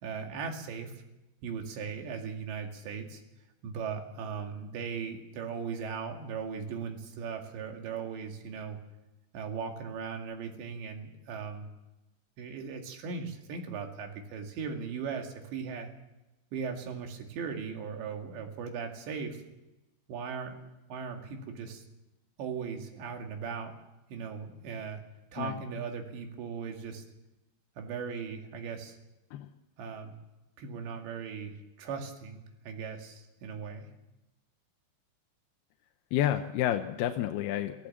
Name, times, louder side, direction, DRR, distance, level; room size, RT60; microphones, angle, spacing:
voice 1, 0.0-1.0 1.4-3.2 3.6-8.8 9.3-11.7 12.4-15.9 16.5-19.4 20.1-21.8 22.4-23.7 24.1-25.0 25.3-27.0 27.8-29.0 29.8-30.1 30.6-33.9, right 6 dB, 80° right, 3 dB, 4.5 m, -38 dB
voice 2, 36.1-37.9, left 11 dB, 75° left, 6 dB, 2.6 m, -30 dB
23.5 x 15.0 x 7.3 m, 0.98 s
omnidirectional pair, 5.0 m